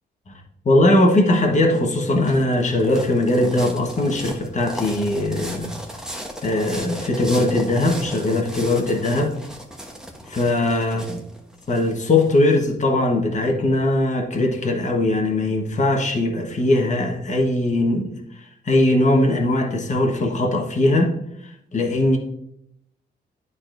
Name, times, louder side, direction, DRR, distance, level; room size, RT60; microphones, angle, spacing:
voice 1, 0.6-5.8 6.4-9.3 10.3-11.2 11.7-18.1 18.3-21.1 21.4-22.2, left 1 dB, 40° left, 1 dB, 1.3 m, -20 dB
sound 1, 1.7-12.6, equal, 5° right, 1.1 m, -36 dB
11.5 x 4.1 x 2.6 m, 0.76 s
cardioid pair, 95°, 19 cm